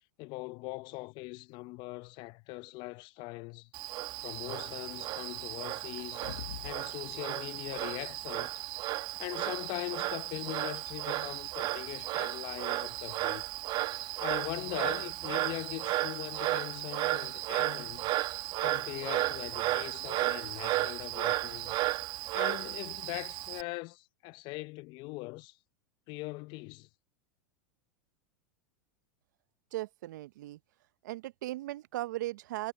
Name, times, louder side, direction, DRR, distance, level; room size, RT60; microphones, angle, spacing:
voice 1, 0.2-3.7 4.2-6.3 6.6-8.6 9.2-13.4 14.2-18.1 18.6-21.8 22.3-25.6 26.1-26.9, left 23 dB, 50° left, 0.8 m, -41 dB
Frog, 3.7-23.6, right 17 dB, 45° right, 1.4 m, -34 dB
sound 1, 6.0-6.8 7.2-7.3, left 12 dB, 80° left, 1.0 m, -43 dB
voice 2, 29.7-30.6 31.0-32.7, right 16 dB, 70° right, 0.9 m, -37 dB
hypercardioid pair, 105°, 10 cm